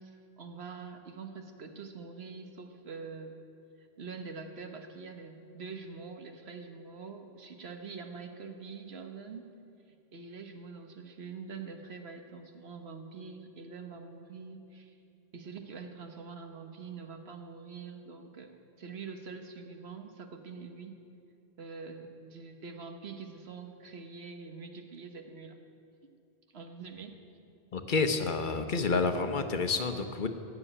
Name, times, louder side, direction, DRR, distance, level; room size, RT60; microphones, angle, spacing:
voice 1, 0.0-3.4 4.0-9.5 10.1-14.9 15.3-21.0 21.6-25.6 26.0-26.1 26.5-27.2, right 5 dB, 90° right, 6 dB, 1.4 m, -45 dB
voice 2, 27.7-30.3, left 4 dB, 55° left, 8 dB, 1.0 m, -29 dB
15.5 x 7.0 x 9.9 m, 2.6 s
omnidirectional pair, 1.0 m